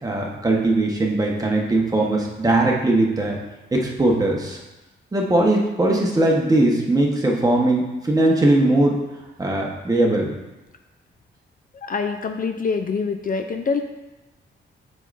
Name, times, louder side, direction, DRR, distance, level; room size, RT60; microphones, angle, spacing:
voice 1, 0.0-3.4 3.7-4.6 5.1-9.0 9.4-10.3, right 2 dB, 20° right, -1 dB, 1.0 m, -20 dB
voice 2, 11.8-13.8, left 5 dB, 45° left, 6 dB, 0.4 m, -25 dB
7.8 x 5.3 x 2.5 m, 1.0 s
cardioid pair, 110°, 20 cm